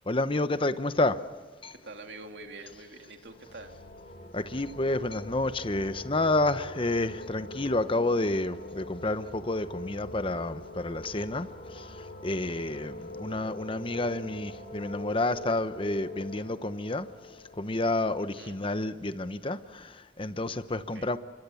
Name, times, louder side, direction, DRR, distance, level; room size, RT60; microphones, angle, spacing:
voice 1, 0.1-1.2 1.6-1.7 4.3-17.1 17.6-21.2, left 2 dB, 30° left, 0.9 m, -30 dB
voice 2, 1.7-3.8 18.2-18.6 20.7-21.1, right 2 dB, 75° right, 2.6 m, -46 dB
sound 1, 3.2-18.8, left 1 dB, 50° left, 3.8 m, -44 dB
25.5 x 24.5 x 7.1 m
head